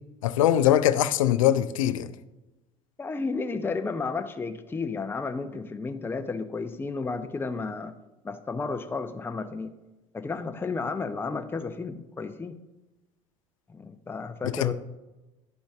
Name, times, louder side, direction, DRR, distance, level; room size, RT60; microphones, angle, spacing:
voice 1, 0.2-2.1 14.4-14.7, left 11 dB, 75° left, 0.4 m, -22 dB
voice 2, 3.0-7.9 8.2-9.7 10.1-12.6 13.7-14.7, left 4 dB, 10° left, 0.5 m, -32 dB
11.5 x 5.1 x 2.4 m
hypercardioid pair, 70°, 17 cm